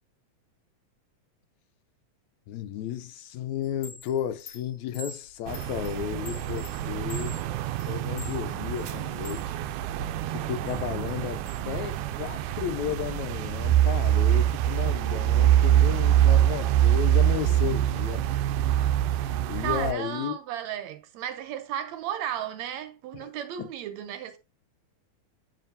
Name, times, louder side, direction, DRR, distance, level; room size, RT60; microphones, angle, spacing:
voice 1, 2.5-7.4 7.9-9.5 10.3-18.3 19.5-20.3 23.2-23.3 23.6-23.7, left 10 dB, 75° left, 1.9 m, -33 dB
Chime, 3.6-9.5 9.9-11.6, left 2 dB, 60° left, 1.6 m, -46 dB
sound 1, 5.5-19.9, right 12 dB, 90° right, 2.0 m, -25 dB
voice 2, 19.6-24.4, right 10 dB, 75° right, 1.9 m, -34 dB
9.1 x 5.4 x 2.7 m
omnidirectional pair, 3.5 m